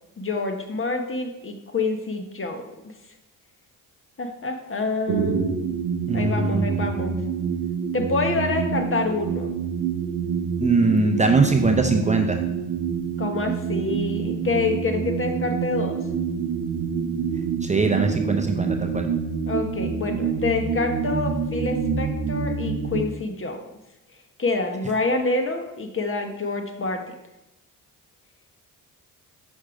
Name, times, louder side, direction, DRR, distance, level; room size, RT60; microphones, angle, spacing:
voice 1, 0.2-2.9 4.2-5.7 6.1-7.2 7.9-9.5 13.2-16.0 19.5-23.6 24.4-27.1, left 3 dB, 35° left, 5 dB, 1.0 m, -27 dB
sound 1, 5.1-23.0, right 6 dB, 80° right, 0.7 m, -27 dB
voice 2, 6.1-6.7 10.6-12.4 17.6-19.1, right 3 dB, 20° right, 3 dB, 0.7 m, -21 dB
6.3 x 3.5 x 5.0 m, 0.93 s
supercardioid pair, 55°, 38 cm